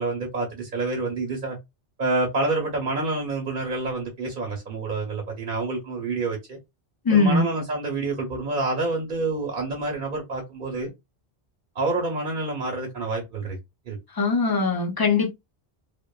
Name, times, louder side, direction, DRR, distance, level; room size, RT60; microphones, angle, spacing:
voice 1, 0.0-1.6 2.0-6.6 7.1-10.9 11.7-13.6 13.9-14.0, right 3 dB, 50° right, 0.7 m, -28 dB
voice 2, 7.0-7.4 14.1-15.3, left 4 dB, 35° left, 0.3 m, -21 dB
2.8 x 2.1 x 2.2 m
omnidirectional pair, 1.1 m